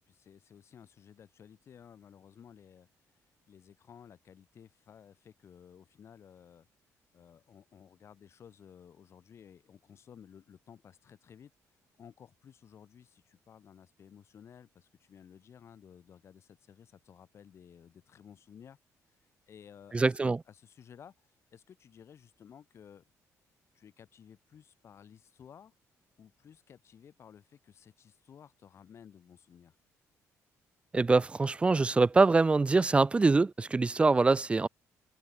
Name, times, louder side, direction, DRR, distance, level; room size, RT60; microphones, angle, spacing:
voice 1, 0.0-2.9 3.5-6.7 7.1-11.5 11.9-18.8 19.5-20.2 20.5-23.0 23.7-25.7 26.2-29.8, left 8 dB, 50° left, 5.5 m, -55 dB
voice 2, 19.9-20.4 30.9-34.7, right 3 dB, 20° right, 0.7 m, -24 dB
cardioid pair, 125°, 6 cm